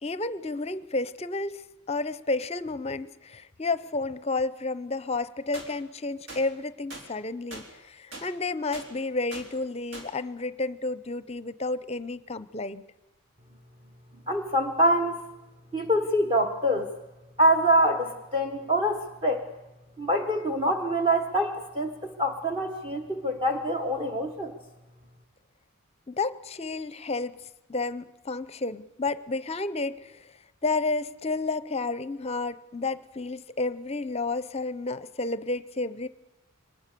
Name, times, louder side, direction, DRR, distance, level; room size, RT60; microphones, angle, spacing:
voice 1, 0.0-1.6 1.9-12.8 26.1-27.4 27.7-30.2 30.6-36.1, left 3 dB, 30° left, 16 dB, 0.6 m, -31 dB
sound 1, 5.5-5.7 6.3-6.4 6.9-7.1 7.5-7.7 8.1-8.3 8.7-8.9 9.3-9.5 9.9-10.1, right 2 dB, 55° right, 3.7 m, -41 dB
voice 2, 14.3-15.2 15.7-16.9 17.4-19.5 20.0-24.5, equal, 25° right, 5 dB, 1.4 m, -25 dB
23.5 x 19.5 x 6.8 m, 1.1 s
head